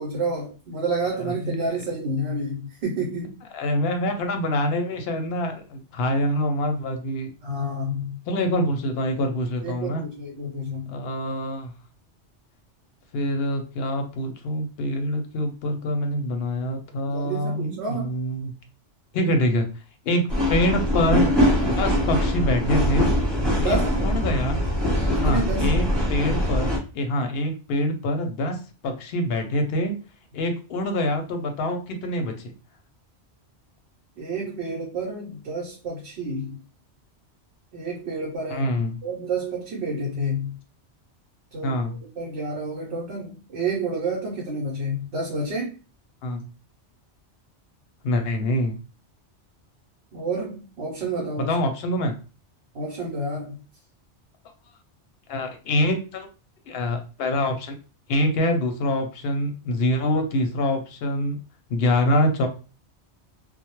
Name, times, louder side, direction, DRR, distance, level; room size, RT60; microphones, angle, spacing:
voice 1, 0.0-3.4 7.4-8.2 9.6-10.9 17.0-18.1 23.5-24.1 25.1-25.8 34.2-36.6 37.7-38.7 39.0-40.6 41.5-45.7 50.1-51.5 52.7-53.6, right 2 dB, 65° right, -2 dB, 0.9 m, -29 dB
voice 2, 1.2-1.6 3.5-7.3 8.3-10.0 10.9-11.7 13.1-18.5 19.1-19.7 20.0-21.3 21.7-23.1 23.6-24.7 25.2-30.0 30.3-32.5 38.5-39.0 41.6-42.0 46.2-46.4 48.0-48.8 51.4-52.2 55.3-56.3 56.7-57.8 58.1-61.4 61.7-62.5, left 1 dB, 65° left, 5 dB, 0.7 m, -25 dB
sound 1, 20.3-26.8, equal, ahead, 0.9 m, -22 dB
2.2 x 2.0 x 2.9 m, 0.34 s
omnidirectional pair, 1.2 m